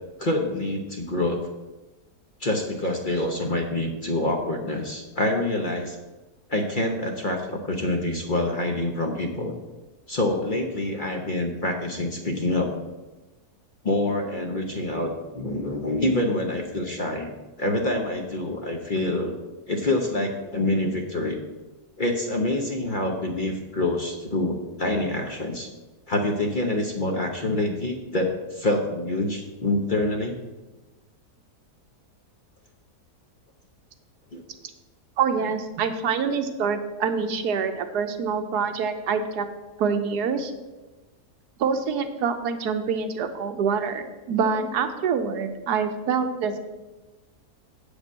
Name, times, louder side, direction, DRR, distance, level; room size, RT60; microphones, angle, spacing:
voice 1, 0.2-1.4 2.4-6.0 6.5-9.5 10.1-12.8 13.8-19.3 19.7-21.4 22.0-25.7 26.1-30.4 34.3-34.4, left 1 dB, 40° left, 2 dB, 0.8 m, -26 dB
voice 2, 35.2-39.5 39.8-40.5 41.6-46.6, right 6 dB, 80° right, 8 dB, 1.3 m, -26 dB
8.1 x 5.2 x 7.3 m, 1.1 s
omnidirectional pair, 1.7 m